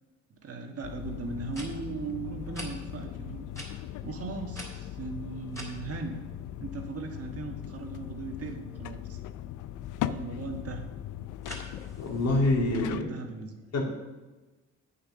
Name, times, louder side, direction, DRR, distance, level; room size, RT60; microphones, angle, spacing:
voice 1, 0.3-3.5 4.0-6.2 6.6-9.2 10.0-10.9 12.7-13.6, right 4 dB, 50° right, 4 dB, 1.5 m, -38 dB
sound 1, 0.7-0.8 1.4-1.7 2.5-2.7 3.5-3.7 4.5-5.7 11.4-12.4, equal, 10° left, 3.3 m, -43 dB
sound 2, 0.8-13.0, left 12 dB, 80° left, 0.5 m, -39 dB
voice 2, 12.0-13.1 13.7-13.8, left 2 dB, 55° left, 0 dB, 2.4 m, -26 dB
8.7 x 7.0 x 6.4 m, 1.2 s
cardioid pair, 90°, 30 cm